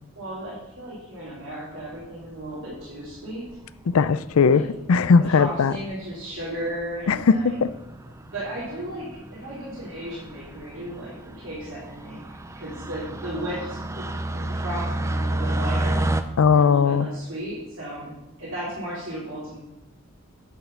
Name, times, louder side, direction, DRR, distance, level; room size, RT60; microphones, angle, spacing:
voice 1, 0.2-3.5 4.5-4.6 5.2-7.6 8.3-12.2 12.5-16.0 16.5-18.1 18.4-19.6, right 1 dB, 60° right, -10 dB, 3.7 m, -35 dB
sound 1, 2.0-2.5 3.5-3.9 4.8-4.9 5.0-5.1 5.4-5.5 5.8-6.2 6.6-6.8 7.1-16.2, right 1 dB, 15° right, 0.5 m, -31 dB
voice 2, 3.9-5.7 7.1-7.7 16.4-17.1, left 5 dB, 80° left, 16 dB, 0.4 m, -19 dB
10.0 x 7.4 x 5.7 m, 0.94 s
head